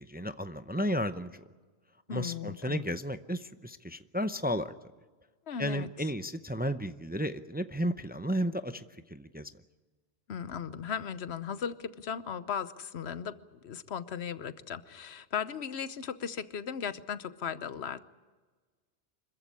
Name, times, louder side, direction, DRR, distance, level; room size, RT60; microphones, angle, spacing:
voice 1, 0.0-1.4 2.1-4.7 5.6-9.5, equal, 10° right, 11 dB, 0.5 m, -33 dB
voice 2, 2.1-2.8 5.5-5.9 10.3-18.0, left 7 dB, 85° left, 14 dB, 1.2 m, -37 dB
25.5 x 14.5 x 9.8 m, 1.4 s
omnidirectional pair, 1.1 m